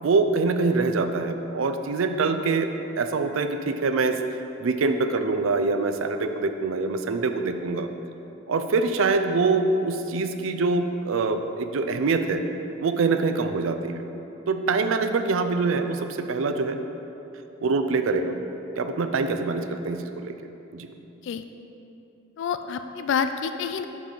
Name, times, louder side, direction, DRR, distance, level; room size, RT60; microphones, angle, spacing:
voice 1, 0.0-2.7 3.0-4.2 4.6-7.9 8.5-12.5 12.8-14.0 14.5-16.8 17.6-18.3 18.8-20.3 20.7-20.9, right 3 dB, 85° right, 8 dB, 0.5 m, -24 dB
voice 2, 22.4-23.8, left 6 dB, 65° left, 9 dB, 0.3 m, -28 dB
7.4 x 4.6 x 5.2 m, 3.0 s
head